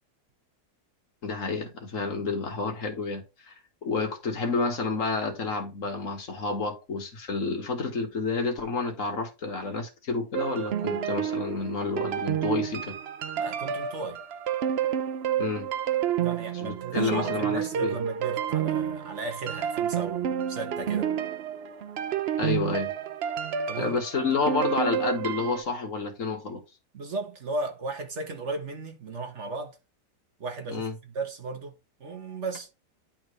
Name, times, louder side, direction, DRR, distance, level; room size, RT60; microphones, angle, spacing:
voice 1, 1.2-3.5 3.8-13.0 15.4-15.7 16.5-18.0 22.4-22.9 23.8-26.6 30.7-30.9, left 4 dB, 50° left, 1.9 m, -30 dB
sound 1, 10.3-25.6, right 9 dB, 85° right, 0.5 m, -30 dB
voice 2, 13.4-14.2 16.2-21.1 23.7-24.0 26.9-29.8 30.4-32.7, right 3 dB, 45° right, 1.4 m, -35 dB
10.0 x 4.3 x 3.2 m
omnidirectional pair, 1.8 m